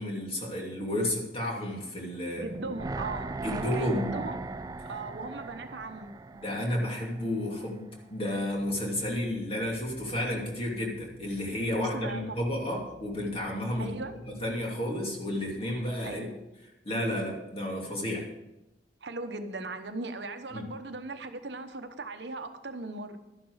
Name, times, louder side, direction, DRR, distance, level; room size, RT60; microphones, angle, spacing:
voice 1, 0.0-2.4 3.4-4.3 6.3-13.9 14.4-16.3 16.8-18.3 20.5-20.6, left 1 dB, 30° left, -1 dB, 2.6 m, -32 dB
voice 2, 2.3-4.4 4.9-6.1 11.7-12.4 13.8-14.1 16.0-16.3 19.0-23.2, right 2 dB, 75° right, 8 dB, 0.9 m, -38 dB
sound 1, 2.5-7.6 7.9-8.0, right 3 dB, 20° right, 0.3 m, -38 dB
sound 2, 8.3-15.9, equal, 60° left, 2.7 m, -53 dB
12.0 x 10.5 x 4.8 m, 0.95 s
head